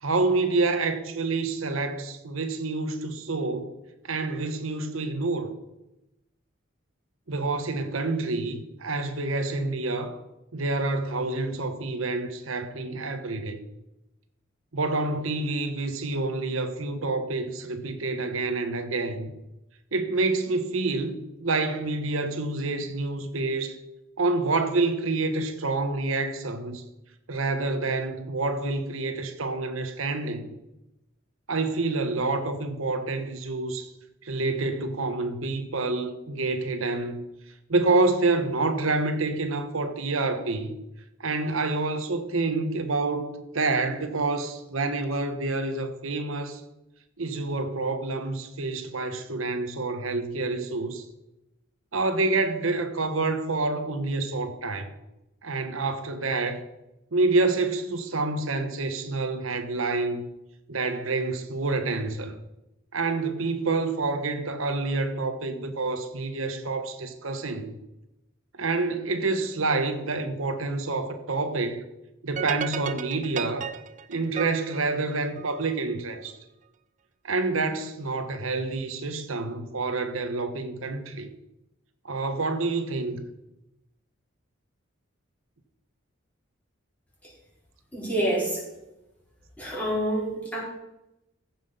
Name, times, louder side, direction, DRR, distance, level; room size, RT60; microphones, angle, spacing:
voice 1, 0.0-3.8 4.0-5.5 7.3-10.2 10.5-13.6 14.7-19.3 19.9-23.8 24.2-26.8 27.3-30.5 31.5-33.9 34.2-37.2 37.7-40.7 41.2-46.6 47.2-51.0 51.9-54.9 55.4-56.6 57.1-60.3 60.7-62.4 62.9-67.8 68.6-71.8 72.2-73.7 74.1-76.4 77.2-81.3 82.0-83.2, right 3 dB, 90° right, 1.2 m, -28 dB
sound 1, 72.4-75.7, right 7 dB, 35° right, 0.5 m, -34 dB
voice 2, 87.9-88.7 89.6-90.6, right 1 dB, 5° left, 4.7 m, -27 dB
15.0 x 5.9 x 5.4 m
head